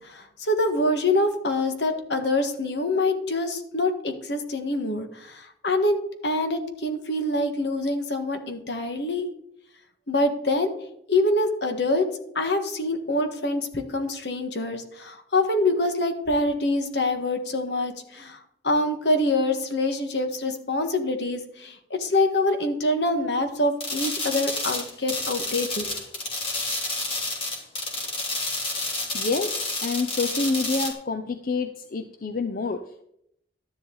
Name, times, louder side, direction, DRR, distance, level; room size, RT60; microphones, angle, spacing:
voice 1, 0.0-9.2 10.1-10.7 11.1-12.0 12.3-18.4 18.6-26.0, left 2 dB, 75° left, 7 dB, 1.7 m, -25 dB
sound 1, 23.8-30.9, left 2 dB, 30° left, 3.0 m, -30 dB
voice 2, 29.1-33.0, left 3 dB, 50° left, 8 dB, 0.6 m, -28 dB
12.0 x 10.5 x 4.0 m, 0.74 s
head